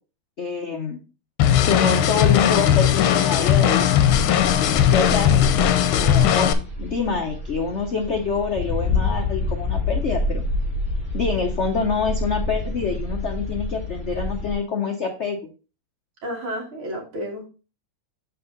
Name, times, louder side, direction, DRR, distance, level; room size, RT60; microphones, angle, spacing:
voice 1, 0.4-1.0 1.6-3.9 4.8-10.4 11.1-15.4, left 5 dB, 70° left, 4 dB, 0.6 m, -26 dB
sound 1, 1.4-6.5, left 10 dB, 85° left, 1.5 m, -18 dB
sound 2, 4.0-14.5, left 2 dB, 5° left, 3.0 m, -28 dB
voice 2, 16.2-17.5, equal, 85° right, -1 dB, 2.8 m, -31 dB
7.0 x 4.6 x 3.8 m, 0.33 s
omnidirectional pair, 2.3 m